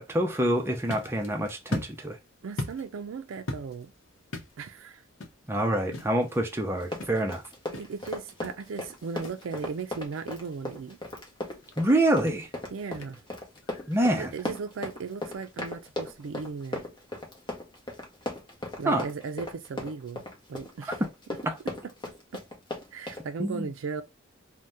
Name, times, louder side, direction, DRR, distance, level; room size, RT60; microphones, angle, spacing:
voice 1, 0.0-2.2 5.5-7.4 11.8-12.5 13.9-14.3 18.9-19.1 21.5-21.6 23.4-23.7, right 1 dB, 10° right, 0.5 m, -26 dB
sound 1, 0.5-14.1, left 2 dB, 70° left, 0.7 m, -43 dB
voice 2, 2.4-3.9 4.6-5.0 7.7-11.0 12.7-13.2 14.1-16.8 18.8-20.2 20.5-21.0 21.4-21.5 21.8-21.9 22.3-22.4 22.9-24.0, right 5 dB, 75° right, 0.4 m, -37 dB
Run, 6.8-23.2, left 1 dB, 25° left, 0.7 m, -37 dB
2.7 x 2.1 x 3.3 m
head